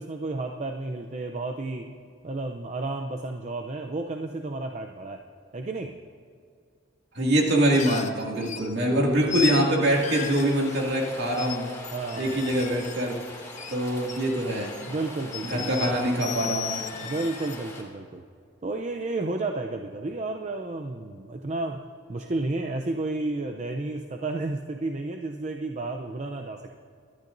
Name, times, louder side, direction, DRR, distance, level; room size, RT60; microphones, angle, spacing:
voice 1, 0.0-1.9 2.2-5.2 5.5-6.0 8.9-9.2 11.9-12.6 14.9-16.0 17.0-18.2 18.6-21.8 22.1-26.7, right 2 dB, 40° right, 4 dB, 0.6 m, -32 dB
voice 2, 7.1-11.7 12.2-13.2 13.7-14.7 15.5-16.9, right 1 dB, 60° right, -1 dB, 2.3 m, -24 dB
sound 1, 7.7-8.7 9.3-9.7 10.0-11.1 11.4-11.6 11.8-13.7 14.0-14.9 15.3-17.6, left 7 dB, 40° left, 0.6 m, -36 dB
Rain, 9.8-17.8, left 2 dB, 15° left, 2.5 m, -42 dB
23.0 x 12.0 x 2.6 m, 2.2 s
head